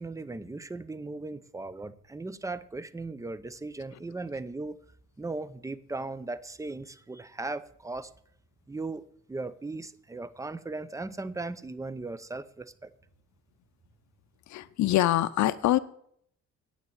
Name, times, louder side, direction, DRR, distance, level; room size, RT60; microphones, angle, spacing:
voice 1, 0.0-4.8 5.2-8.1 8.7-9.0 9.3-12.9, right 3 dB, 10° right, 0.6 m, -37 dB
voice 2, 14.5-15.8, left 14 dB, 70° left, 0.6 m, -24 dB
8.9 x 6.8 x 8.7 m
cardioid pair, 90°, 30 cm